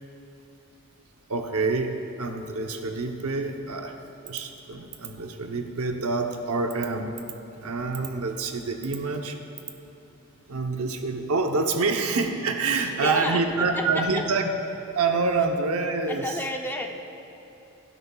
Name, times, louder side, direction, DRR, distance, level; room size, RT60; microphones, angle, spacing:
voice 1, 1.3-1.9 2.2-7.2 7.6-9.4 10.5-14.5 14.9-16.4, right 3 dB, 90° right, 5 dB, 0.8 m, -27 dB
voice 2, 13.0-14.0 16.1-16.9, left 1 dB, 10° left, 2 dB, 0.6 m, -30 dB
16.0 x 12.5 x 2.3 m, 3.0 s
head